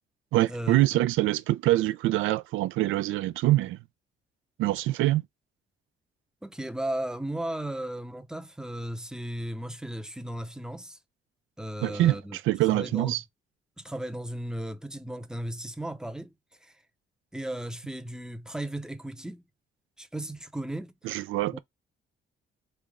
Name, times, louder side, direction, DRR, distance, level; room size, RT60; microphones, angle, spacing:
voice 1, 0.3-3.8 4.6-5.2 11.8-13.2 21.0-21.6, right 16 dB, 85° right, 0.4 m, -25 dB
voice 2, 6.4-11.0 11.6-12.4 12.7-13.2 13.8-16.3 16.6-16.8 17.3-19.4 20.0-21.3 21.5-21.6, right 1 dB, 5° right, 0.6 m, -35 dB
4.0 x 3.3 x 3.5 m
cardioid pair, 90°, 20 cm